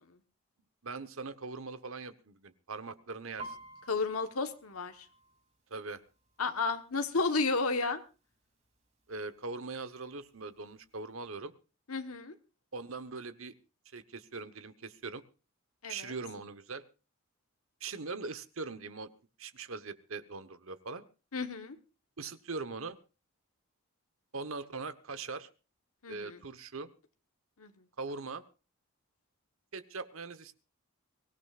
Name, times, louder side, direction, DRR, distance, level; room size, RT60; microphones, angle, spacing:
voice 1, 0.8-3.6 5.7-6.0 9.1-11.5 12.7-13.5 13.9-15.2 15.9-16.8 17.8-19.1 19.4-21.0 22.2-23.0 24.3-25.5 26.1-26.9 28.0-28.4 29.7-30.5, right 4 dB, 65° right, 12 dB, 1.1 m, -41 dB
Piano, 3.4-7.0 7.4-7.8 8.1-8.8 9.4-9.5 9.7-10.7 11.1-11.2, right 2 dB, 30° right, 3.0 m, -50 dB
voice 2, 3.9-5.0 6.4-8.0 11.9-12.4 15.8-16.1 21.3-21.8 26.0-26.4 27.6-27.7, left 3 dB, 75° left, 7 dB, 1.3 m, -32 dB
24.0 x 16.0 x 2.5 m, 0.32 s
head